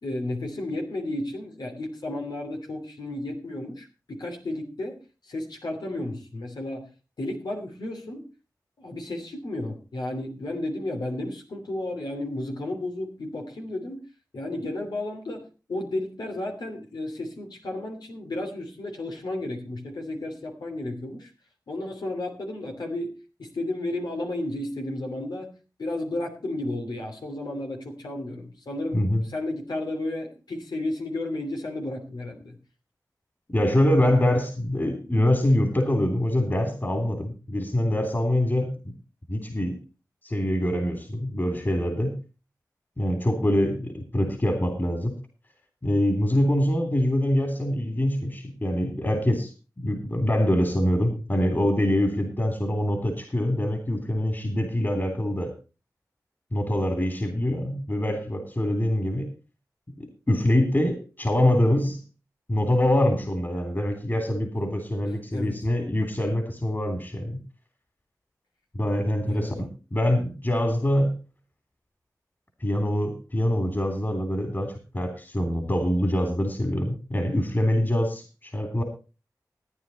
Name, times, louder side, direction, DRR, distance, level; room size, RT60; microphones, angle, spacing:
voice 1, 0.0-5.0 5.2-6.9 7.2-8.3 8.8-14.0 14.3-21.3 21.7-23.1 23.4-32.6 65.3-65.6 69.2-69.7, left 1 dB, 90° left, 2 dB, 2.9 m, -33 dB
voice 2, 33.5-38.9 39.3-39.8 40.2-42.2 43.0-45.2 45.8-49.5 49.8-55.5 56.5-59.3 60.0-62.0 62.5-67.4 68.7-71.2 72.6-78.8, left 1 dB, 35° left, 4 dB, 3.2 m, -24 dB
14.5 x 9.6 x 4.2 m, 0.33 s
cardioid pair, 45°, 7 cm